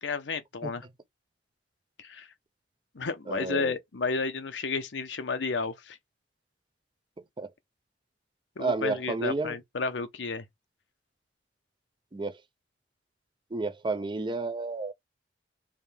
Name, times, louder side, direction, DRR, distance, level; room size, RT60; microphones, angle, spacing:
voice 1, 0.0-0.9 2.0-2.3 2.9-6.0 8.6-10.4, left 4 dB, 80° left, 0.8 m, -32 dB
voice 2, 3.3-3.7 7.4-7.5 8.6-9.6 12.1-12.4 13.5-14.9, right 3 dB, 25° right, 0.5 m, -31 dB
4.9 x 2.7 x 3.4 m
head